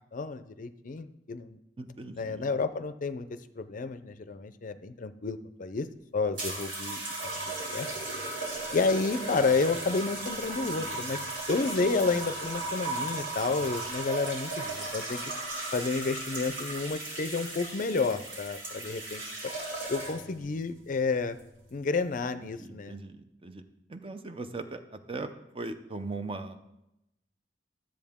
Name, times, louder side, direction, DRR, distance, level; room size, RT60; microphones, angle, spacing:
voice 1, 0.1-1.6 2.2-3.3 3.6-5.9 6.1-7.0 7.7-7.9 8.7-11.2 11.5-15.2 15.7-19.5 19.9-21.4 21.7-22.9, left 4 dB, 45° left, 12 dB, 0.5 m, -30 dB
voice 2, 1.8-2.5 22.4-23.6 23.9-26.6, right 3 dB, 30° right, 8 dB, 0.6 m, -39 dB
sound 1, 6.4-20.4 21.3-21.6, right 2 dB, 90° right, 2.9 m, -36 dB
12.0 x 7.6 x 3.6 m, 0.87 s
head